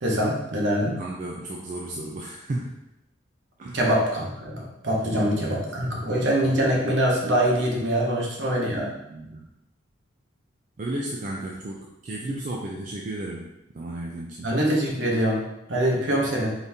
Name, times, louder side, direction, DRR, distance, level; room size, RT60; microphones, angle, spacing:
voice 1, 0.0-1.0 3.7-8.9 14.4-15.4 15.7-16.6, equal, 65° right, -2 dB, 0.9 m, -24 dB
voice 2, 1.0-2.8 3.6-3.8 5.0-6.0 8.9-9.5 10.8-14.5, right 1 dB, 40° right, -2 dB, 0.4 m, -34 dB
3.9 x 2.7 x 3.5 m, 0.89 s
head